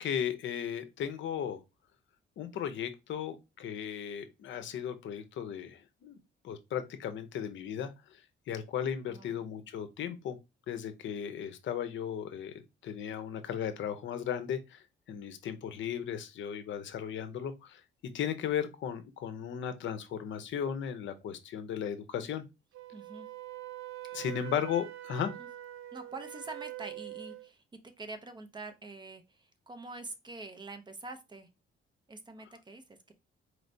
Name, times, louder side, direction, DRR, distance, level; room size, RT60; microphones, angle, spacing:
voice 1, 0.0-1.6 2.4-6.2 6.4-8.2 8.5-10.4 10.7-12.5 12.8-17.8 18.1-22.4 24.1-25.3, left 8 dB, 65° left, 0.6 m, -36 dB
voice 2, 9.1-9.4 22.9-23.3 24.0-24.2 25.4-25.5 25.9-27.6 28.0-31.5 32.1-33.1, right 3 dB, 20° right, 0.5 m, -45 dB
Wind instrument woodwind instrument, 22.7-27.5, right 15 dB, 85° right, 0.4 m, -44 dB
4.3 x 3.2 x 2.6 m
cardioid pair, 155°, 21 cm